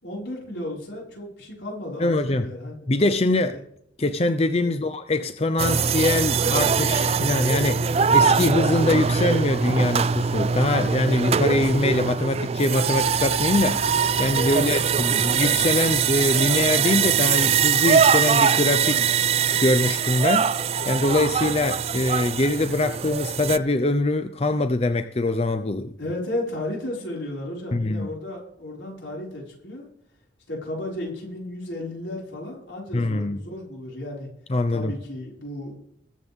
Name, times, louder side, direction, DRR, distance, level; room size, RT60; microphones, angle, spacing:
voice 1, 0.0-2.8 3.4-3.6 4.6-4.8 14.4-15.3 26.0-29.8 30.5-34.3 34.7-35.9, left 1 dB, 80° left, -3 dB, 5.5 m, -34 dB
voice 2, 2.0-2.5 2.9-3.6 4.0-19.0 19.6-20.6 20.9-25.9 27.7-28.1 32.9-33.4 34.5-34.9, left 2 dB, 35° left, 8 dB, 0.6 m, -23 dB
sound 1, 5.6-23.6, right 6 dB, 35° right, 0.4 m, -22 dB
21.5 x 8.0 x 3.6 m, 0.70 s
head